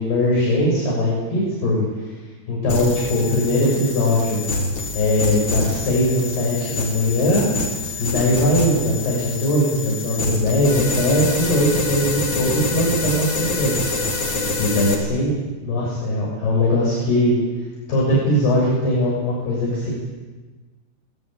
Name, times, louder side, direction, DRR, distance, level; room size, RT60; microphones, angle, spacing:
voice 1, 0.0-2.1 2.5-4.4 4.9-7.5 8.0-13.9 14.6-15.3 15.6-17.3 17.9-19.9, left 1 dB, 60° left, -4 dB, 8.8 m, -20 dB
sound 1, 2.7-15.0, left 2 dB, 35° left, 4.5 m, -26 dB
28.0 x 20.5 x 9.2 m, 1.3 s
omnidirectional pair, 5.2 m